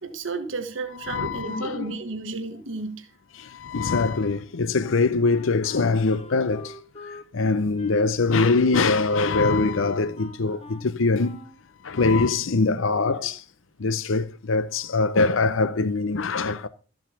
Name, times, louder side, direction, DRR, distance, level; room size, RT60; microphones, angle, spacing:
voice 1, 0.0-3.1 10.5-10.6, right 3 dB, 75° right, 1.4 m, -33 dB
voice 2, 1.1-1.8 3.4-6.7 7.3-11.4 11.8-13.4 13.8-16.7, left 3 dB, 85° left, 0.7 m, -23 dB
Wind instrument woodwind instrument, 4.8-11.6, left 2 dB, 30° left, 1.1 m, -45 dB
13.5 x 7.2 x 5.7 m
head